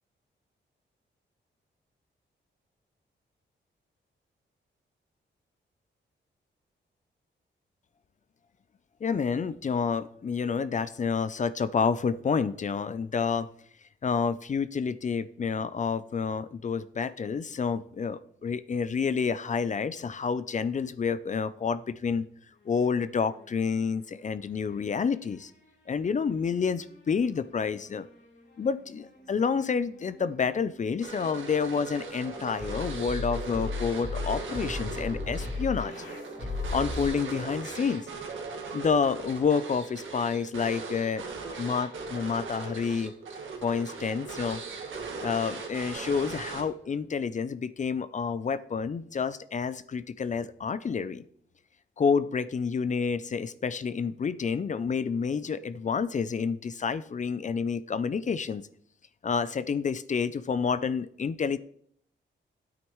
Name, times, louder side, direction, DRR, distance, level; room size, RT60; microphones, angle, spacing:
voice 1, 9.0-13.5 14.0-22.3 22.7-25.5 25.9-28.1 28.6-35.9 36.7-38.1 38.7-41.2 41.6-43.1 43.6-44.6 45.2-51.2 52.0-58.7 59.2-61.6, left 5 dB, 40° left, 15 dB, 0.5 m, -29 dB
sound 1, 22.6-24.2 24.5-25.9 26.6-37.1, left 3 dB, 65° left, 5.2 m, -39 dB
sound 2, 31.0-47.0, right 4 dB, 85° right, 1.8 m, -39 dB
12.5 x 8.8 x 3.1 m, 0.64 s
cardioid pair, 90°, 20 cm